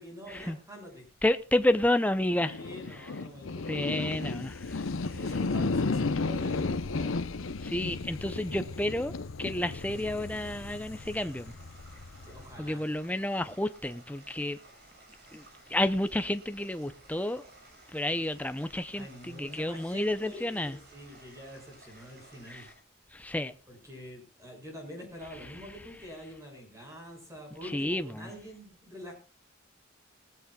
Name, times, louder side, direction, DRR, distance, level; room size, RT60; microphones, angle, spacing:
voice 1, 0.0-1.1 2.4-4.3 5.1-7.2 12.2-12.9 18.9-22.7 23.7-29.1, left 1 dB, 15° right, 6.3 m, -45 dB
voice 2, 1.2-2.6 3.7-4.9 5.6-5.7 7.6-11.5 12.6-14.6 15.3-15.4 15.7-17.4 17.9-20.8 22.5-22.7 23.1-23.5 27.7-28.3, left 1 dB, 10° left, 0.6 m, -30 dB
sound 1, 2.3-12.7, left 3 dB, 90° left, 0.8 m, -34 dB
sound 2, 9.8-22.8, right 2 dB, 50° right, 7.3 m, -56 dB
19.5 x 15.0 x 2.4 m
head